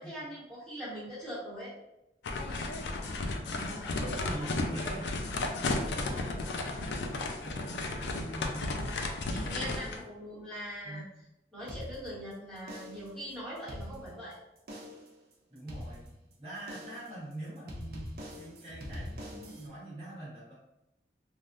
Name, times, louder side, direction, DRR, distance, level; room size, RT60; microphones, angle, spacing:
voice 1, 0.0-1.7 3.9-4.3 6.1-6.3 9.3-11.0 11.5-14.4, equal, 5° left, -10 dB, 1.0 m, -41 dB
sound 1, 2.2-10.0, left 2 dB, 80° left, 0.4 m, -34 dB
voice 2, 2.4-5.1 5.6-6.4 7.1-8.9 9.2-10.0 10.8-11.0 15.5-16.1 16.4-20.5, right 1 dB, 30° right, -11 dB, 1.1 m, -45 dB
sound 2, 11.7-12.3 12.7-13.2 13.6-14.3 14.7-15.2 15.7-16.3 16.7-17.2 17.7-19.7, equal, 55° right, 0.5 m, -43 dB
3.4 x 2.1 x 2.5 m, 0.90 s
head